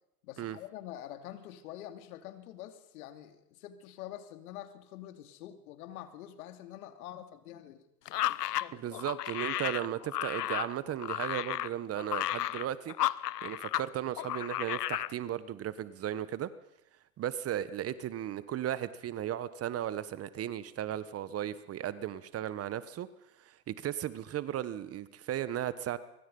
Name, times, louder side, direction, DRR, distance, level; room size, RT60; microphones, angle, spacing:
voice 1, 0.2-7.8 8.3-9.0, left 12 dB, 65° left, 8 dB, 2.9 m, -46 dB
sound 1, 8.1-13.9 14.2-15.1, left 14 dB, 80° left, 0.9 m, -33 dB
voice 2, 8.7-12.9 13.4-16.5 17.2-23.1 23.4-26.0, right 11 dB, 30° right, 15 dB, 1.3 m, -36 dB
24.0 x 23.5 x 5.5 m, 0.84 s
hypercardioid pair, 105°, 47 cm